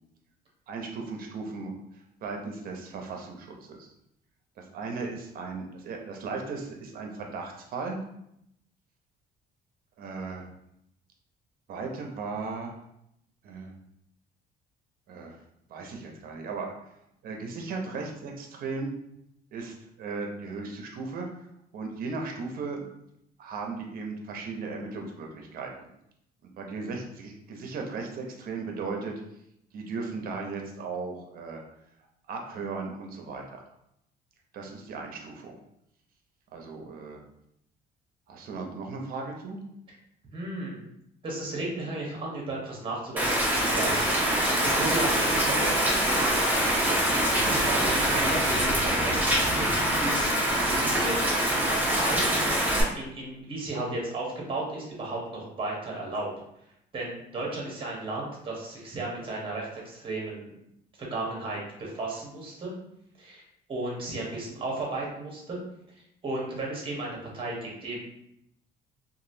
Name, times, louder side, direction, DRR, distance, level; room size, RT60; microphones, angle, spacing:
voice 1, 0.7-1.7 2.2-3.9 4.6-8.0 10.0-10.5 11.7-12.8 13.4-13.7 15.1-15.4 15.7-16.9 17.2-18.9 19.5-21.3 21.7-22.8 23.4-25.7 26.6-29.1 29.7-31.6 32.3-33.6 34.5-35.5 36.5-37.2 38.3-39.6, right 4 dB, 60° right, 2 dB, 0.7 m, -36 dB
voice 2, 40.3-40.8 41.2-46.7 47.5-51.2 51.6-52.4 53.0-56.3 56.9-60.5 61.0-62.7 63.2-63.4 63.7-65.6 66.2-68.0, right 2 dB, 30° right, -2 dB, 1.1 m, -34 dB
Rain, 43.2-52.8, right 1 dB, 10° right, 0.8 m, -24 dB
2.9 x 2.6 x 2.7 m, 0.77 s
cardioid pair, 110°, 17 cm